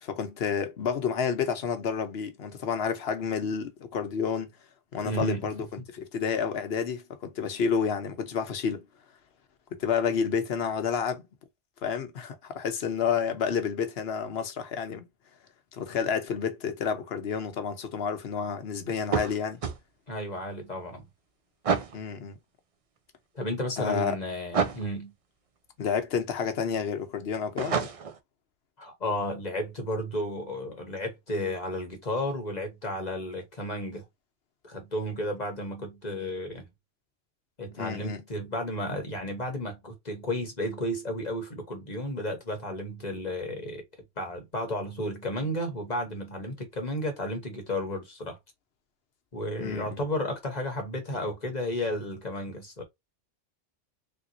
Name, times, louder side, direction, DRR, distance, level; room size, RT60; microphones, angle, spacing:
voice 1, 0.0-4.5 4.9-8.9 9.7-11.3 11.8-15.1 15.7-19.6 21.9-22.4 23.8-24.2 25.8-27.9 37.8-38.2 49.6-50.0, left 6 dB, 65° left, 1.0 m, -30 dB
voice 2, 5.0-5.5 20.1-21.1 23.3-25.1 28.8-34.0 34.6-36.7 37.6-43.8 44.2-48.4 49.3-52.8, left 1 dB, 40° left, 1.1 m, -33 dB
sound 1, 19.0-19.8 21.6-22.0 24.5-24.9 27.6-28.2, right 6 dB, 45° right, 0.5 m, -28 dB
3.6 x 2.9 x 2.6 m
omnidirectional pair, 1.2 m